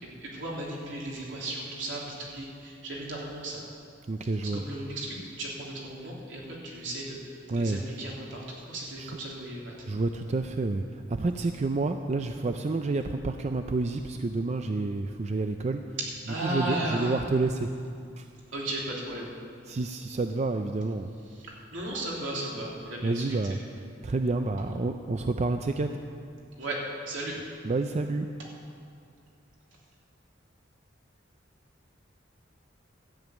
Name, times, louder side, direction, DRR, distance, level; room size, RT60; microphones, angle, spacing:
voice 1, 0.0-3.6 4.4-9.7 16.3-17.2 18.5-19.3 21.3-23.2 26.6-26.8 27.1-27.3, right 1 dB, 75° right, -4 dB, 3.2 m, -35 dB
voice 2, 4.1-4.6 7.5-7.8 9.0-9.1 9.8-15.8 16.4-17.7 18.2-18.3 19.7-21.1 23.0-23.6 24.0-25.9 27.6-28.3, right 3 dB, 35° right, 6 dB, 0.4 m, -29 dB
13.0 x 7.1 x 9.2 m, 2.4 s
head